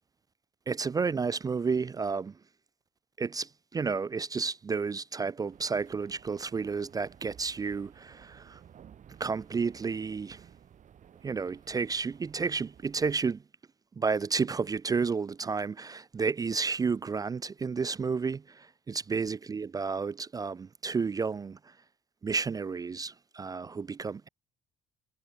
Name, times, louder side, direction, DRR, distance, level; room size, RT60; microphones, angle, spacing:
voice 1, 0.7-2.3 3.2-8.6 9.2-10.4 11.2-13.4 14.0-21.6 22.2-24.3, right 5 dB, 20° right, 0.4 m, -31 dB
sound 1, 5.5-13.1, right 9 dB, 45° right, 2.4 m, -55 dB
cardioid pair, 110°, 17 cm